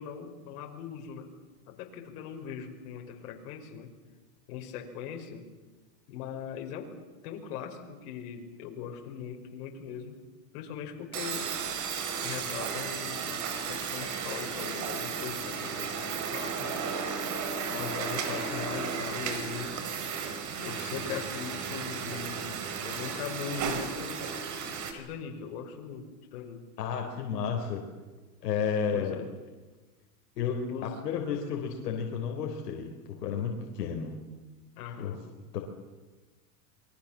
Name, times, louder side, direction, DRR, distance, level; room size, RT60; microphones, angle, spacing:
voice 1, 0.0-1.3 1.7-3.9 4.5-5.5 6.1-6.9 7.2-10.2 10.5-11.6 12.2-16.9 17.7-19.8 20.6-24.3 24.9-26.6 28.9-29.3 30.7-31.0 34.8-35.2, left 7 dB, 70° left, 3 dB, 5.6 m, -40 dB
sound 1, 11.1-24.9, right 6 dB, 40° right, 4.6 m, -34 dB
voice 2, 26.8-27.8 28.4-29.2 30.4-34.2 35.0-35.1 35.5-35.6, left 6 dB, 90° left, 2 dB, 3.9 m, -32 dB
28.0 x 23.0 x 7.4 m, 1.3 s
supercardioid pair, 125°, 47 cm